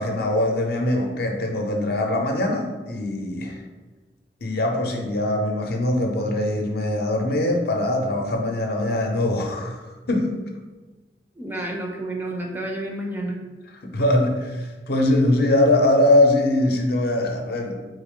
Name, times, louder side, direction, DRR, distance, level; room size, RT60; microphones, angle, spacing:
voice 1, 0.0-3.6 4.4-10.4 13.8-17.7, left 1 dB, 60° left, 2 dB, 0.6 m, -22 dB
voice 2, 11.4-13.4, right 1 dB, 10° right, 0 dB, 0.4 m, -30 dB
4.0 x 3.4 x 3.6 m, 1.3 s
head